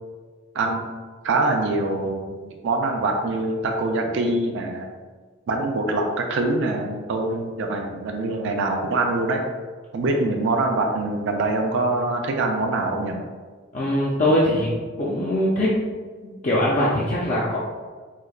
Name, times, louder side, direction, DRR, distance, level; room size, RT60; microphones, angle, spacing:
voice 1, 0.5-0.8 1.2-4.9 5.5-9.4 9.9-13.2, right 2 dB, 65° right, 2 dB, 0.4 m, -24 dB
voice 2, 13.7-14.7 15.0-15.8 16.2-17.6, left 1 dB, 40° left, -6 dB, 0.4 m, -21 dB
4.7 x 2.1 x 2.3 m, 1.5 s
head